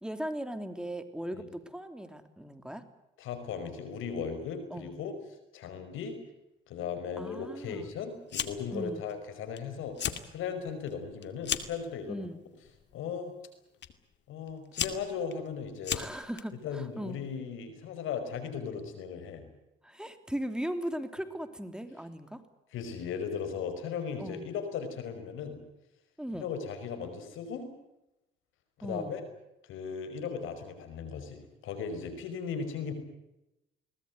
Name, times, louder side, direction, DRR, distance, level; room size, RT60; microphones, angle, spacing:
voice 1, 0.0-2.8 4.7-4.9 7.2-7.9 8.7-9.1 12.1-12.4 15.9-17.2 19.8-22.4 24.2-24.5 26.2-26.5 28.8-29.2, equal, 5° right, 8 dB, 3.0 m, -38 dB
voice 2, 3.2-5.1 5.5-6.2 6.7-12.2 12.9-13.3 14.3-16.0 16.6-19.5 22.7-25.6 26.3-27.7 28.8-29.2 29.6-32.9, left 6 dB, 85° left, 9 dB, 5.3 m, -37 dB
Fire, 8.3-8.8 9.1-9.6 9.9-10.3 10.7-11.8 12.6-12.9 13.8-13.9 14.5-16.4, left 9 dB, 60° left, 2.4 m, -34 dB
22.5 x 19.5 x 9.6 m, 0.92 s
cardioid pair, 90°, 20 cm